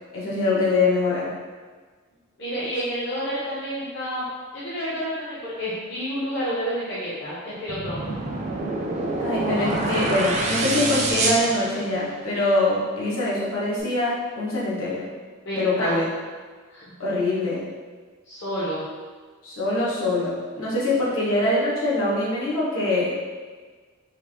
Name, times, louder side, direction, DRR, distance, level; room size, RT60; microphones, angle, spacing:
voice 1, 0.1-1.3 9.2-15.1 15.5-16.1 17.0-17.7 19.4-23.1, left 2 dB, 80° left, -7 dB, 1.1 m, -23 dB
voice 2, 2.4-8.2 15.4-16.0 16.7-16.8 18.2-18.8, equal, 55° left, -10 dB, 0.7 m, -29 dB
sound 1, 7.7-12.3, right 2 dB, 35° right, 0.4 m, -26 dB
3.3 x 2.4 x 3.4 m, 1.5 s
head